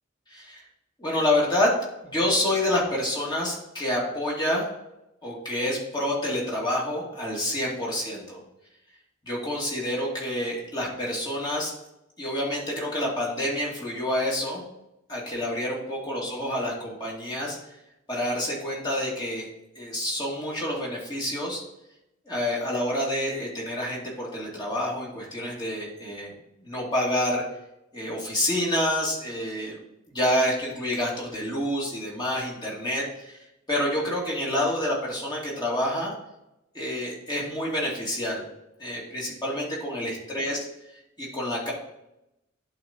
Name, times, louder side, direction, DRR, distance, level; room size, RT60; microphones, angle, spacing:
voice 1, 0.3-0.6 1.0-1.8 2.0-4.6 5.2-8.4 9.3-11.7 12.2-14.6 15.1-17.6 18.1-19.5 19.8-21.6 22.3-26.3 26.6-27.4 27.9-29.8 30.1-33.4 33.7-36.1 36.7-38.4 38.8-40.6 41.2-41.7, left 1 dB, 20° left, -5 dB, 2.5 m, -28 dB
11.5 x 4.1 x 4.4 m, 0.87 s
head